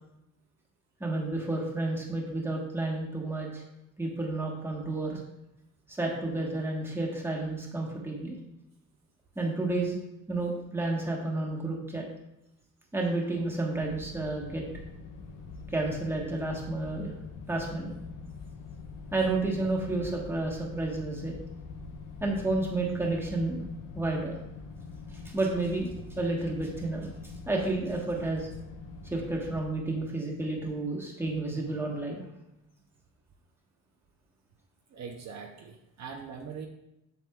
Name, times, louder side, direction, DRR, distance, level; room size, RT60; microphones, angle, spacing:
voice 1, 1.0-3.6 4.0-5.2 5.9-8.4 9.3-10.0 10.3-12.0 12.9-14.6 15.7-17.1 17.5-17.9 19.1-21.3 22.2-23.6 23.9-24.3 25.1-27.1 27.5-28.5 29.1-32.3, right 2 dB, 5° right, -2 dB, 1.2 m, -31 dB
sound 1, 13.7-29.7, left 4 dB, 75° left, 1.0 m, -44 dB
voice 2, 34.9-36.7, right 6 dB, 55° right, 2 dB, 0.7 m, -42 dB
7.6 x 7.1 x 2.3 m, 0.89 s
cardioid pair, 150°, 33 cm